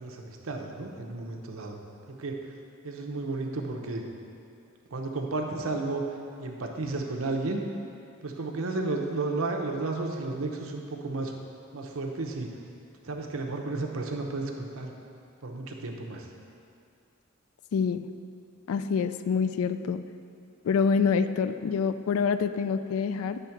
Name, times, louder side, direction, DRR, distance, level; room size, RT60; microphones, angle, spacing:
voice 1, 0.0-1.8 2.1-2.3 2.8-4.0 4.9-6.0 6.4-7.6 8.2-11.3 11.7-12.5 13.0-14.9 15.4-16.3, right 3 dB, 75° right, 1 dB, 0.8 m, -32 dB
voice 2, 17.7-18.0 18.7-20.0 20.6-23.4, left 5 dB, 75° left, 11 dB, 0.3 m, -26 dB
9.0 x 3.5 x 5.8 m, 2.5 s
head